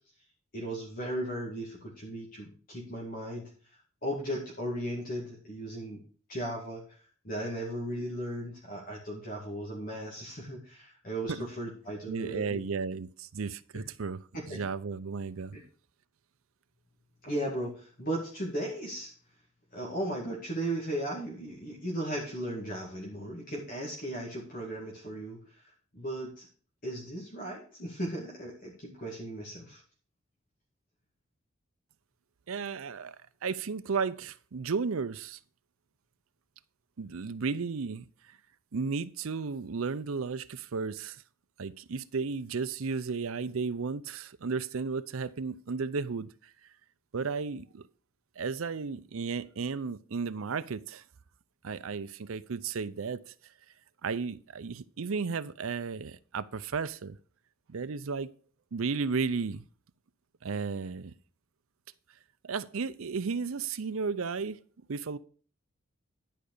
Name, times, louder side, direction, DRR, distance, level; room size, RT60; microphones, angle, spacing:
voice 1, 0.5-3.5 4.0-6.0 6.3-7.0 7.2-12.6 13.7-13.8 14.5-14.6 15.5-15.6 17.2-19.1 19.7-26.5 26.8-29.8, right 1 dB, 40° left, 2.2 m, -36 dB
voice 2, 12.1-14.2 14.5-15.6 32.5-35.4 37.0-38.0 38.7-41.2 41.6-46.3 47.1-47.9 48.4-51.0 51.6-53.3 54.0-57.2 57.7-58.3 58.7-59.6 60.4-61.1 62.4-64.6 64.9-65.2, right 5 dB, 80° right, 0.6 m, -34 dB
11.0 x 5.1 x 6.6 m
head